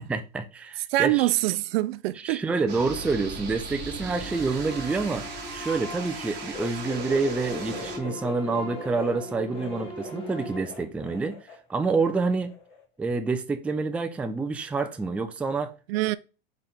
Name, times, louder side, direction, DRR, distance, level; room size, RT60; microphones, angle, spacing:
voice 1, 0.0-1.3 2.2-5.3 5.5-11.4 11.7-12.5 13.0-15.7, right 4 dB, 5° right, 0.3 m, -28 dB
voice 2, 0.9-2.4 15.9-16.2, right 17 dB, 75° right, 0.5 m, -24 dB
sound 1, 2.7-8.0, right 4 dB, 35° right, 1.5 m, -38 dB
sound 2, 3.6-10.6, left 1 dB, 20° left, 1.8 m, -40 dB
sound 3, 6.5-11.6 11.8-12.8 13.1-13.2 14.2-14.3, left 2 dB, 65° left, 1.8 m, -40 dB
4.2 x 3.3 x 3.7 m
supercardioid pair, 125°, 30 cm